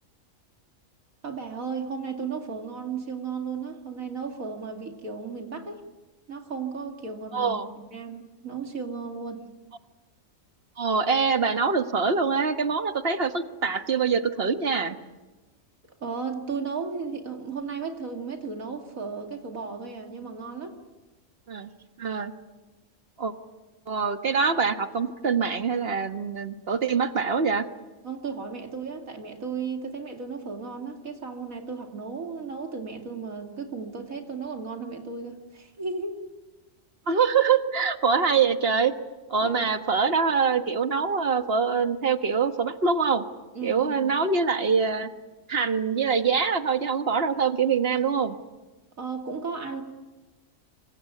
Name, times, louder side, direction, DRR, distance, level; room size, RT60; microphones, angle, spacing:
voice 1, 1.2-5.8 6.3-9.4 16.0-20.8 28.0-36.1 39.4-39.6 43.5-44.1 49.0-49.8, right 5 dB, 90° right, 3 dB, 2.9 m, -35 dB
voice 2, 7.3-7.7 10.8-15.0 21.5-21.7 22.0-22.3 23.2-23.3 23.9-27.6 37.1-38.9 39.3-43.2 43.6-45.1 45.5-48.3, right 5 dB, 45° right, 7 dB, 1.7 m, -24 dB
26.0 x 25.0 x 8.3 m, 1.2 s
omnidirectional pair, 1.4 m